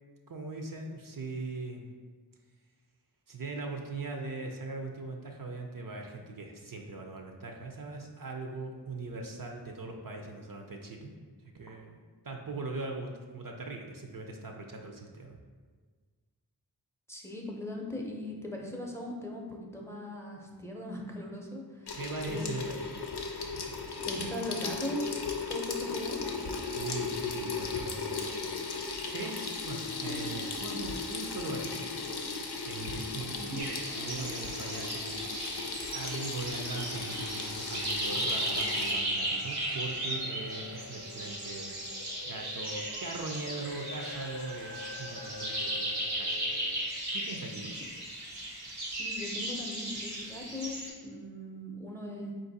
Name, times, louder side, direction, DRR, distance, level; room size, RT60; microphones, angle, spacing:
voice 1, 0.3-1.8 3.3-11.1 11.5-12.0 12.2-15.4 22.0-23.0 26.6-28.4 29.1-31.9 32.3-35.3 35.9-46.7 47.1-47.8, right 3 dB, 60° right, 2 dB, 0.5 m, -40 dB
voice 2, 17.1-22.0 22.3-22.5 23.8-25.1 25.5-26.2 33.2-33.6 47.8-47.9 48.9-52.3, left 1 dB, 5° left, -1 dB, 0.6 m, -39 dB
Water tap faucet / Sink (filling or washing), 21.9-38.9, left 4 dB, 85° left, 0.6 m, -36 dB
sound 1, 33.6-50.9, right 1 dB, 90° right, 0.9 m, -36 dB
sound 2, 36.5-46.9, left 3 dB, 45° left, 0.6 m, -49 dB
4.2 x 2.6 x 4.0 m, 1.5 s
wide cardioid pair, 45°, 38 cm